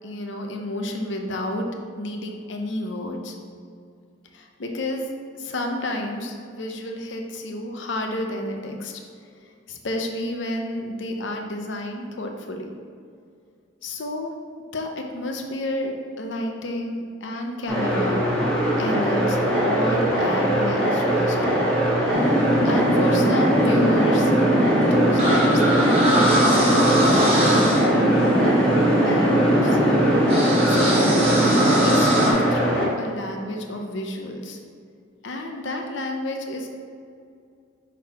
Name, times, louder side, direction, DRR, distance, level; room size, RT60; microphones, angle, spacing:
voice 1, 0.0-1.7 1.9-3.4 4.3-5.1 5.3-9.0 9.4-12.7 13.8-14.3 14.7-18.2 18.8-21.8 22.1-24.3 24.8-26.0 26.3-28.7 29.0-29.8 30.4-31.1 31.4-34.6 35.2-36.7, left 1 dB, 65° left, 3 dB, 0.7 m, -30 dB
sound 1, 17.7-32.9, right 1 dB, 5° left, 1.5 m, -22 dB
sound 2, 22.1-32.3, equal, 30° right, 1.4 m, -20 dB
6.1 x 4.1 x 4.2 m, 2.3 s
head